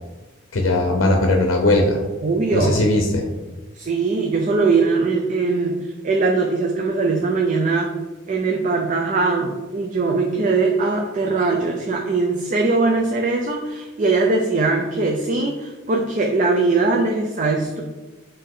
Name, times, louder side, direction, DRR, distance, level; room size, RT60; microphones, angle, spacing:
voice 1, 0.5-2.0 2.5-3.3, left 1 dB, 75° left, 2 dB, 0.6 m, -18 dB
voice 2, 2.2-2.8 3.7-7.9 8.3-17.8, right 3 dB, 40° right, 1 dB, 0.4 m, -21 dB
5.4 x 2.7 x 3.6 m, 1.2 s
head